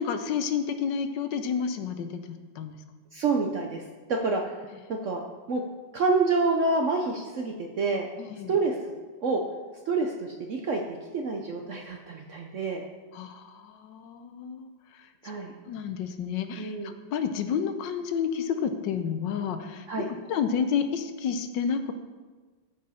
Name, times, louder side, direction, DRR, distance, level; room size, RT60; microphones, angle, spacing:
voice 1, 0.0-2.8 8.2-8.6 13.1-15.3 15.6-21.9, left 7 dB, 80° left, 8 dB, 1.3 m, -30 dB
voice 2, 3.1-4.6 4.9-5.2 5.5-5.6 5.9-8.1 8.5-8.8 9.2-9.4 9.9-10.8 11.1-12.8 15.2-15.5 16.6-16.9 19.9-20.1, right 3 dB, 65° right, 2 dB, 0.8 m, -27 dB
13.5 x 5.2 x 4.2 m, 1.4 s
omnidirectional pair, 2.0 m